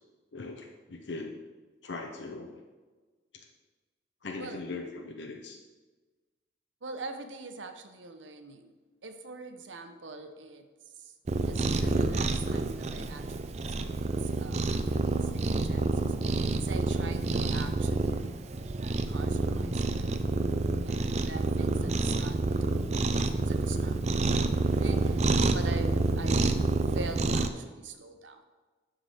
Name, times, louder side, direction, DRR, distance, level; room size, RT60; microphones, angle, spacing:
voice 1, 0.3-1.4 1.8-2.6 3.3-3.5 4.2-5.6, left 3 dB, 75° left, 2 dB, 0.8 m, -40 dB
voice 2, 6.8-8.8 9.0-10.7 11.0-11.1 11.4-18.4 19.0-28.4, right 3 dB, 90° right, 7 dB, 0.9 m, -44 dB
Cat, 11.3-27.5, right 2 dB, 35° right, 0.5 m, -28 dB
11.5 x 3.9 x 6.4 m, 1.3 s
head